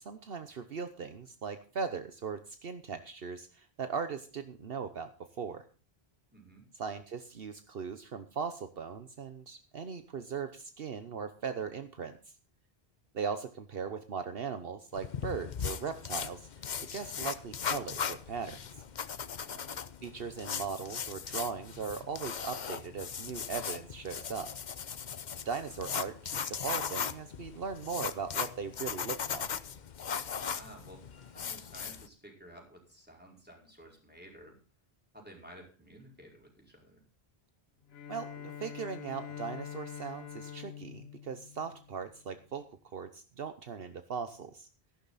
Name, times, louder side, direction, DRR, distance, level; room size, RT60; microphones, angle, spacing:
voice 1, 0.0-5.1 5.4-5.6 6.7-12.2 13.1-16.5 16.9-18.6 20.0-24.5 25.4-29.5 38.1-42.6 42.9-44.7, right 6 dB, 65° right, 9 dB, 1.1 m, -39 dB
voice 2, 6.3-6.7 19.4-19.9 30.4-34.6 35.1-37.0, right 1 dB, 10° right, -1 dB, 5.0 m, -53 dB
sound 1, 14.9-32.1, left 7 dB, 50° left, 0.8 m, -38 dB
Bowed string instrument, 37.9-42.3, left 9 dB, 75° left, 1.2 m, -45 dB
14.5 x 11.5 x 4.1 m, 0.37 s
omnidirectional pair, 1.1 m